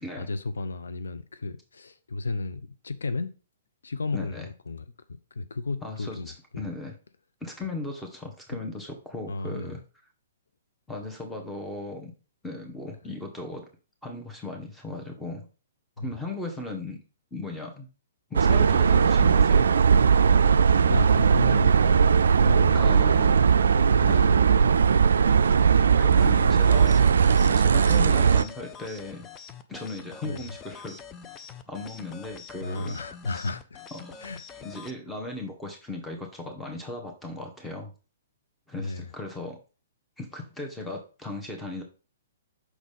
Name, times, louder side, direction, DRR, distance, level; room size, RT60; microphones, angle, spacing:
voice 1, 0.2-3.3 3.8-6.7 8.5-8.6 9.3-9.8 16.0-16.1 20.9-24.9 26.1-26.6 30.2-30.6 32.6-33.8 34.2-34.4 38.8-39.1, left 3 dB, 75° left, 0.7 m, -33 dB
voice 2, 4.1-4.5 5.8-6.2 6.6-6.9 7.4-9.8 10.9-12.1 12.4-13.7 14.0-15.5 16.0-17.0 17.3-17.9 18.3-19.7 22.7-23.4 24.0-24.3 25.7-27.0 27.5-29.3 29.7-31.0 31.7-33.0 33.3-33.4 33.9-37.9 38.7-39.6 40.2-41.8, left 2 dB, 5° left, 1.5 m, -37 dB
sound 1, 18.3-28.4, right 6 dB, 70° right, 0.3 m, -19 dB
sound 2, 26.6-34.9, left 6 dB, 20° left, 0.6 m, -45 dB
6.1 x 4.0 x 5.3 m
figure-of-eight pair, 120°, 0 cm